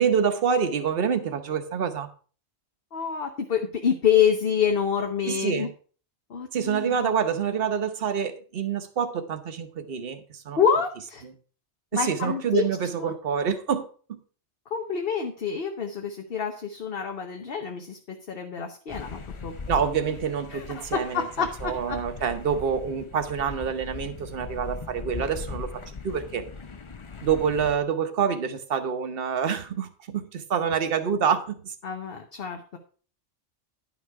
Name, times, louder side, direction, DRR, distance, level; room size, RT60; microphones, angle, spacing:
voice 1, 0.0-2.1 5.3-5.7 6.5-10.6 11.9-14.2 19.7-26.4 27.2-31.7, right 7 dB, 55° right, 9 dB, 1.1 m, -27 dB
voice 2, 2.9-5.7 6.3-7.1 10.6-11.2 11.9-12.6 12.9-13.1 14.7-19.6 20.5-22.0 31.8-32.8, left 7 dB, 55° left, 4 dB, 1.2 m, -27 dB
sound 1, 18.9-27.8, left 4 dB, 35° left, 0.6 m, -39 dB
11.0 x 5.9 x 4.6 m, 0.41 s
omnidirectional pair, 1.2 m